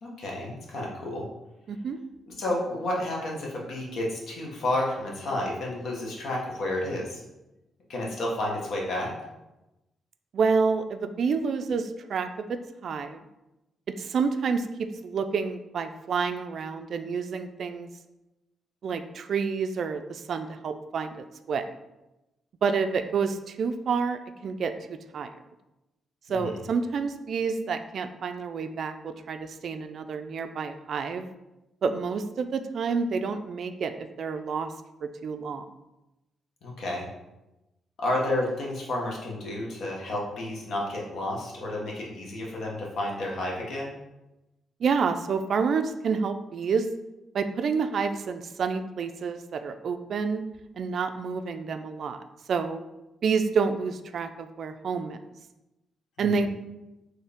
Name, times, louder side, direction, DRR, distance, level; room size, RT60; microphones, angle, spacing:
voice 1, 0.0-1.3 2.3-7.2 7.9-9.1 26.3-26.6 36.6-37.1 38.0-43.9 56.2-56.4, left 1 dB, 65° left, -2 dB, 1.2 m, -31 dB
voice 2, 1.7-2.0 10.3-13.2 14.0-17.9 18.8-21.6 22.6-24.7 25.1-25.3 26.3-31.3 31.8-34.7 35.2-35.7 44.8-46.9 47.3-50.4 50.8-52.2 52.5-52.8 53.2-55.2 56.2-56.5, right 5 dB, 55° right, 8 dB, 0.3 m, -28 dB
4.5 x 3.2 x 3.5 m, 0.98 s
cardioid pair, 130°, 0 cm